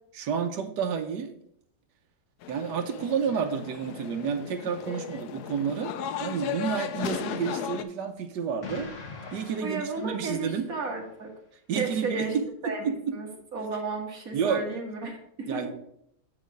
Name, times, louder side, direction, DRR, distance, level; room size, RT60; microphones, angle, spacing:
voice 1, 0.1-1.3 2.5-5.9 6.2-8.9 9.3-10.7 11.7-13.2 14.3-14.6 15.5-15.8, right 7 dB, 75° right, 7 dB, 1.4 m, -30 dB
sound 1, 2.4-7.8, left 9 dB, 75° left, 1.1 m, -36 dB
voice 2, 4.9-5.2 9.6-11.3 11.8-12.3 12.6-15.6, right 3 dB, 55° right, 0 dB, 2.0 m, -34 dB
Explosion, 8.6-10.8, left 4 dB, 50° left, 1.4 m, -42 dB
9.4 x 3.4 x 6.3 m, 0.73 s
omnidirectional pair, 1.9 m